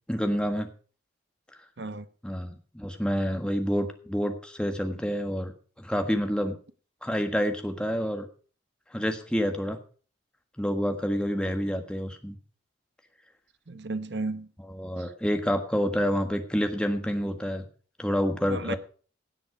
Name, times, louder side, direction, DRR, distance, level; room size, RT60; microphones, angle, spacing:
voice 1, 0.1-0.7 2.2-5.5 5.8-6.5 7.0-8.3 8.9-9.8 10.6-12.4 14.7-17.6 18.0-18.8, equal, 5° left, 1.5 m, -28 dB
voice 2, 13.7-14.5 15.0-15.1 18.5-18.8, right 3 dB, 65° right, 0.9 m, -33 dB
17.0 x 7.7 x 4.9 m
head